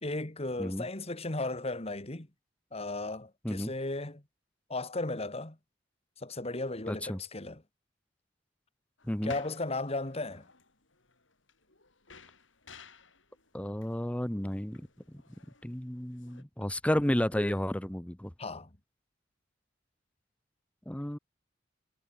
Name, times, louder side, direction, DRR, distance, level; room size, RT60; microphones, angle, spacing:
voice 1, 0.0-2.3 2.7-4.2 4.7-5.6 6.2-7.6 9.2-10.4 18.4-18.7, left 2 dB, 35° left, 2.1 m, -35 dB
voice 2, 6.9-7.2 9.1-9.3 13.5-15.2 15.6-18.3 20.9-21.2, equal, 5° left, 0.9 m, -32 dB
sound 1, 9.0-16.4, left 4 dB, 85° left, 7.3 m, -55 dB
head